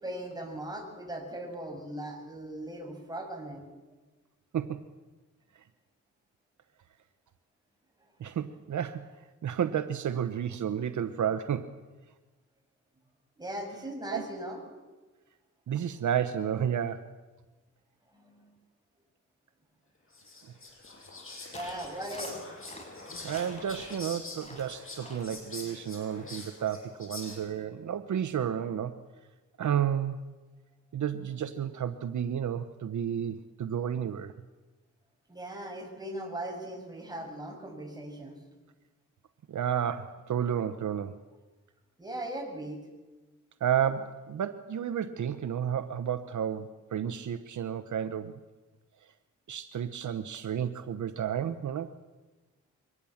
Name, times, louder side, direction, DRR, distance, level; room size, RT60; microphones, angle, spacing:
voice 1, 0.0-3.6 13.4-14.6 18.1-18.5 21.5-22.4 35.3-38.4 42.0-42.8, right 1 dB, 15° right, 1 dB, 7.0 m, -39 dB
voice 2, 4.5-4.9 8.2-9.1 9.4-11.8 14.1-14.3 15.7-17.1 23.2-29.0 29.6-30.2 30.9-34.3 39.5-41.2 43.6-48.4 49.5-51.9, right 9 dB, 75° right, 10 dB, 1.0 m, -31 dB
Whispering, 20.1-27.6, left 2 dB, 45° left, 7.4 m, -44 dB
sound 1, 21.5-21.8 22.1-22.9 23.2-24.0 24.4-24.7 25.0-25.3, left 1 dB, 20° left, 6.1 m, -47 dB
24.0 x 19.5 x 7.2 m, 1.2 s
cardioid pair, 75°, 30 cm